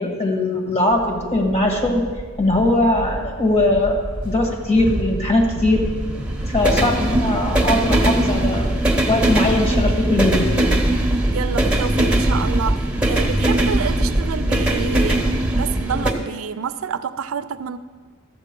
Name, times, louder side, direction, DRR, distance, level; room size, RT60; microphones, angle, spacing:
voice 1, 0.0-2.1 2.4-5.9 6.5-8.7 9.1-10.7, left 2 dB, 30° left, 2 dB, 1.7 m, -20 dB
sound 1, 0.9-16.1, right 1 dB, 5° right, 1.0 m, -21 dB
voice 2, 11.3-17.8, right 7 dB, 75° right, 12 dB, 0.4 m, -28 dB
12.5 x 7.6 x 5.3 m, 1.5 s
head